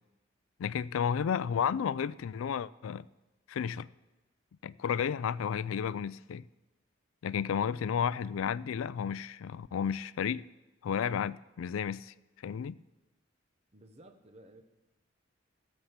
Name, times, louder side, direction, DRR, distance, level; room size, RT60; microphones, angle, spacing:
voice 1, 0.6-3.0 3.5-3.9 4.6-6.4 7.2-10.4 10.8-12.1 12.4-12.8, left 7 dB, 85° left, 0.3 m, -32 dB
voice 2, 13.7-14.6, right 1 dB, 30° right, 0.9 m, -55 dB
14.5 x 7.4 x 5.8 m
head